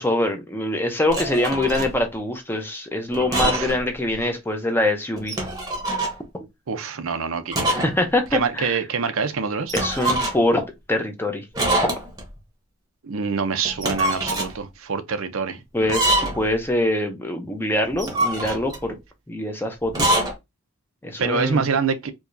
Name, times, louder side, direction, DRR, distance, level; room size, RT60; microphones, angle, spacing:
voice 1, 0.0-5.4 7.7-8.8 9.7-11.5 11.8-11.9 15.7-19.0 19.3-20.2 21.0-21.7, left 1 dB, 10° left, 0.6 m, -24 dB
sound 1, 1.1-1.9 3.1-3.8 4.1-4.2 5.2-6.2 7.5-8.0 8.3-8.4 9.7-10.5 11.6-12.3 13.7-14.5 15.8-16.5 17.9-18.9 19.9-20.3, right 1 dB, 15° right, 0.9 m, -24 dB
voice 2, 3.4-3.7 6.7-7.7 8.3-9.7 13.0-15.6 21.2-22.1, right 5 dB, 70° right, 0.6 m, -25 dB
4.7 x 2.3 x 2.6 m
head